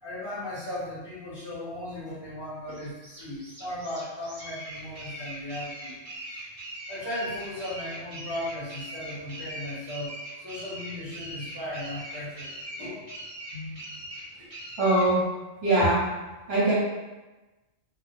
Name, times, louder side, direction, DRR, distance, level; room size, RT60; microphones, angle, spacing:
voice 1, 0.0-5.9 6.3-6.4 6.9-12.5 12.8-13.0 14.4-14.5, left 1 dB, 25° left, -9 dB, 0.9 m, -36 dB
sound 1, 2.7-15.1, right 1 dB, 35° right, 0.7 m, -41 dB
voice 2, 14.8-15.2 15.6-16.0 16.5-16.7, right 1 dB, 60° right, -8 dB, 1.0 m, -22 dB
2.3 x 2.0 x 3.0 m, 1.1 s
omnidirectional pair, 1.3 m